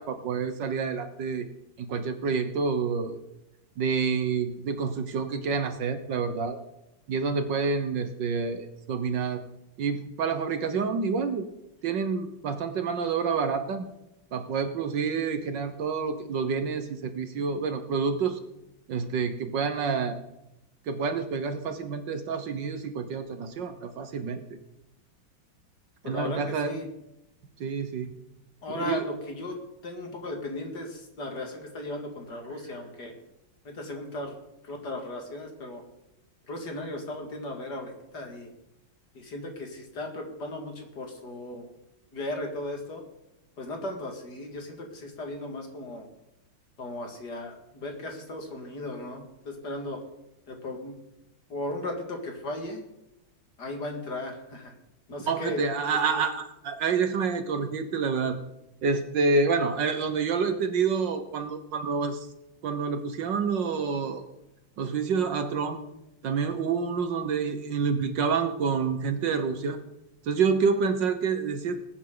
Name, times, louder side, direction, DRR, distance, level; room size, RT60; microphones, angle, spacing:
voice 1, 0.0-1.5 1.8-3.2 3.8-6.6 7.1-9.4 9.8-11.5 11.8-13.8 14.3-18.4 18.9-20.2 20.9-24.4 26.0-26.7 27.6-28.1 28.7-29.0 55.3-58.4 58.8-62.3 62.6-64.2 64.8-65.8 66.2-69.8 70.2-71.8, right 5 dB, 65° right, 9 dB, 1.6 m, -28 dB
voice 2, 26.0-26.9 28.6-29.6 29.8-33.1 33.6-34.4 34.6-35.8 36.5-38.5 39.1-41.7 42.1-43.0 43.6-46.1 46.8-50.0 50.5-51.0 51.5-52.8 53.6-54.7 55.1-55.8 56.1-56.2, left 2 dB, 50° left, 3 dB, 2.6 m, -36 dB
20.0 x 9.1 x 3.9 m, 0.89 s
omnidirectional pair, 2.3 m